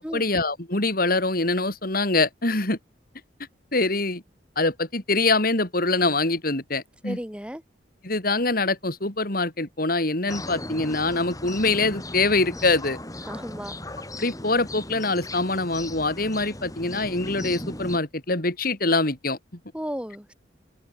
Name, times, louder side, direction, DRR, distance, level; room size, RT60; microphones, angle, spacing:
voice 1, 0.1-2.8 3.7-4.2 4.6-7.2 8.0-13.0 14.2-19.4, left 3 dB, 50° left, 3.7 m, -24 dB
voice 2, 7.0-7.6 13.3-13.7 19.7-20.3, equal, 5° right, 7.5 m, -34 dB
sound 1, 10.3-18.0, left 1 dB, 20° left, 7.0 m, -37 dB
open air
head